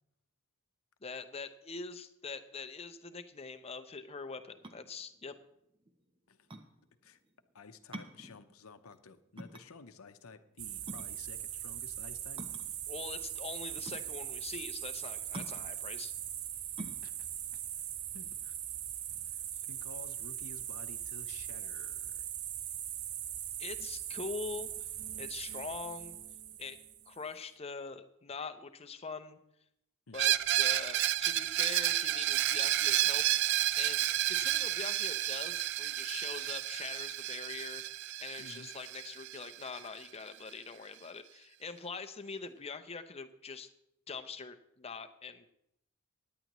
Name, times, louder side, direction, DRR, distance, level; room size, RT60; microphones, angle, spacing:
voice 1, 1.0-5.4 12.9-16.1 23.6-24.9 25.2-26.2 26.6-26.8 27.1-29.4 30.1-37.8 38.2-43.7 44.1-45.5, left 4 dB, 30° left, 8 dB, 0.7 m, -43 dB
sound 1, 4.6-18.8, right 1 dB, 25° right, 0.8 m, -49 dB
voice 2, 7.5-12.5 16.8-17.3 17.5-17.6 18.1-18.5 19.3-19.4 19.7-22.3 30.1-30.2 38.4-38.7, left 4 dB, 85° left, 9 dB, 0.8 m, -53 dB
sound 2, 10.6-27.3, right 11 dB, 80° right, 0.7 m, -40 dB
Screech, 30.1-39.8, right 13 dB, 50° right, 0.3 m, -31 dB
17.0 x 10.5 x 3.1 m, 0.79 s
head